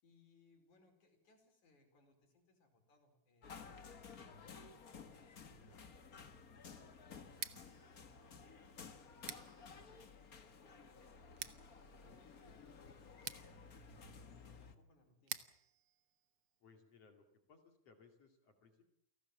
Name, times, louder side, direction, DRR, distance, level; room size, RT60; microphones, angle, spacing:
voice 1, 0.0-8.5 8.9-13.6 14.2-15.5, left 3 dB, 75° left, 4 dB, 6.3 m, -72 dB
sound 1, 3.4-14.7, left 5 dB, 35° left, 1.6 m, -55 dB
Scissors, 7.3-17.1, right 10 dB, 60° right, 1.8 m, -53 dB
voice 2, 16.6-18.8, left 4 dB, 55° left, 5 dB, 3.6 m, -65 dB
29.0 x 18.0 x 7.4 m, 0.73 s
omnidirectional pair, 3.4 m